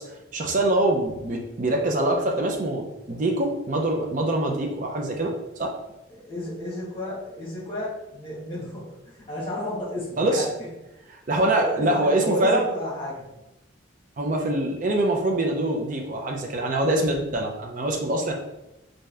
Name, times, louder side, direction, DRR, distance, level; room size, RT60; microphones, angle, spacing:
voice 1, 0.0-5.3 5.6-5.7 10.2-10.5 11.3-12.7 14.2-18.3, right 1 dB, 40° right, 1 dB, 0.5 m, -24 dB
voice 2, 6.1-10.7 11.5-13.2, left 1 dB, 25° left, -6 dB, 1.2 m, -32 dB
3.4 x 2.6 x 3.2 m, 0.94 s
head